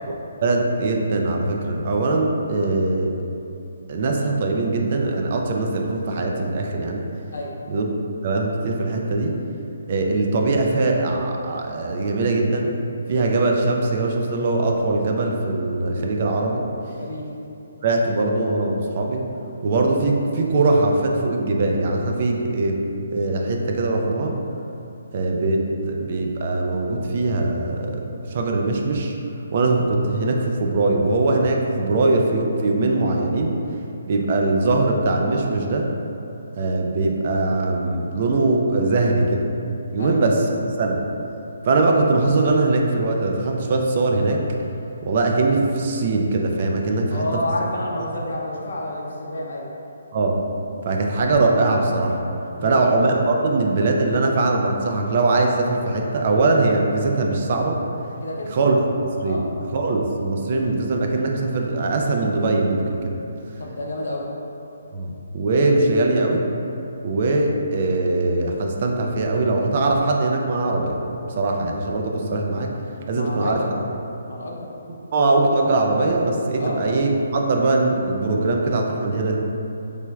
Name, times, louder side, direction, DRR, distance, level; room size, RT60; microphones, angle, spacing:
voice 1, 0.4-3.1 3.9-7.0 7.7-7.9 8.2-9.4 9.9-12.7 13.1-16.6 17.8-19.3 19.6-22.8 23.1-24.4 25.1-29.2 29.5-33.6 34.1-35.9 36.6-39.4 39.9-40.5 40.8-41.0 41.6-44.5 45.1-47.3 48.0-48.1 50.1-50.4 50.9-52.2 52.6-57.8 58.4-58.8 59.2-59.4 59.7-63.2 64.9-66.5 67.0-71.0 71.4-72.7 73.1-73.6 75.1-79.4, right 2 dB, 45° right, 1 dB, 0.3 m, -21 dB
voice 2, 46.9-49.7 52.6-52.8 58.2-58.5 59.3-59.4 63.6-64.2 73.1-73.7 74.3-74.7 76.6-76.8, left 1 dB, 70° left, -2 dB, 0.6 m, -29 dB
3.2 x 3.0 x 2.3 m, 2.8 s
hypercardioid pair, 155°, 0 cm